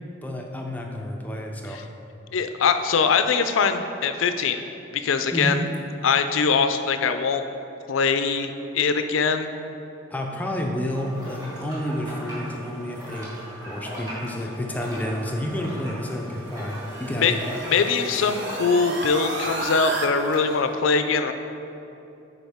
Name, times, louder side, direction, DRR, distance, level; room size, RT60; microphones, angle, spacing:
voice 1, 0.2-1.8 5.3-5.6 10.1-13.3 13.7-17.4 18.1-18.3, equal, 10° left, 1 dB, 0.4 m, -30 dB
voice 2, 2.3-4.6 4.9-5.6 6.0-7.4 7.9-9.5 17.2-17.4 17.7-21.3, left 5 dB, 80° left, 8 dB, 0.4 m, -22 dB
sound 1, 10.9-20.8, equal, 15° right, 1.4 m, -38 dB
sound 2, 16.1-20.1, right 2 dB, 60° right, 0.6 m, -33 dB
9.4 x 4.2 x 3.5 m, 2.8 s
head